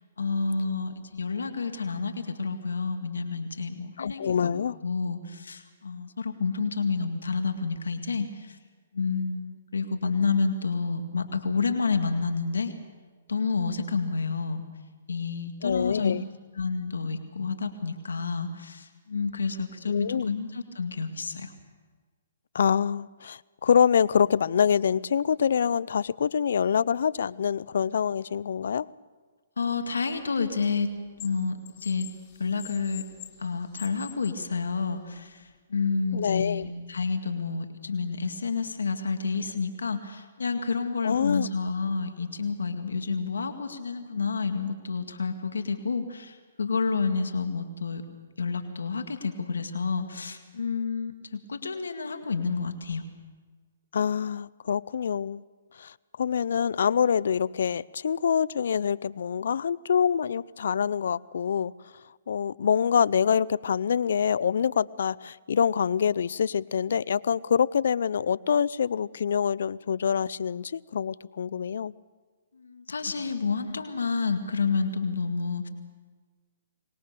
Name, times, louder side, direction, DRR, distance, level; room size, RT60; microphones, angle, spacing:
voice 1, 0.2-4.5 4.8-8.6 8.9-12.7 13.3-14.6 15.1-16.1 16.6-21.5 29.6-30.9 31.2-33.1 33.4-48.0 48.4-53.0 72.5-75.7, left 4 dB, 90° left, 2.1 m, -29 dB
voice 2, 4.0-4.8 15.6-16.2 19.9-20.3 22.5-28.9 36.1-36.6 41.0-41.5 53.9-55.4 55.8-61.7 62.3-71.9, left 7 dB, 70° left, 0.6 m, -25 dB
sound 1, 30.2-31.3 31.7-34.4 35.2-35.3, left 13 dB, 40° left, 2.3 m, -45 dB
24.5 x 20.5 x 6.8 m
hypercardioid pair, 140°, 0 cm